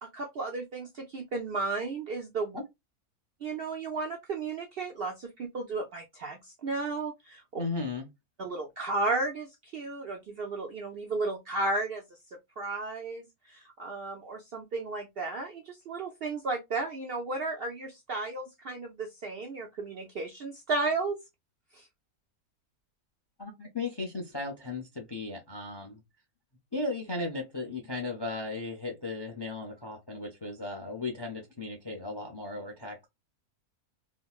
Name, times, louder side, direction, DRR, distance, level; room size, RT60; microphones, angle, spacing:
voice 1, 0.0-2.6 3.4-7.6 8.4-12.0 12.6-21.2 21.7-21.8, right 3 dB, 60° right, 0.6 m, -34 dB
voice 2, 7.6-8.1 23.4-26.0 26.7-33.1, left 3 dB, 30° left, 0.4 m, -36 dB
4.0 x 2.1 x 2.3 m
omnidirectional pair, 1.6 m